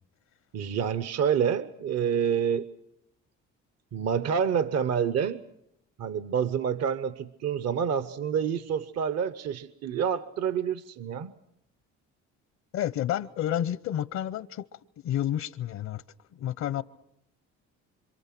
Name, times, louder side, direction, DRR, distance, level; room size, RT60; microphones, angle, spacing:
voice 1, 0.5-2.7 3.9-5.4 6.0-11.3, right 7 dB, 60° right, 0.9 m, -28 dB
voice 2, 12.7-14.7 15.0-16.0 16.3-16.8, left 11 dB, 65° left, 0.8 m, -30 dB
27.0 x 25.5 x 6.0 m
cardioid pair, 85°, 30 cm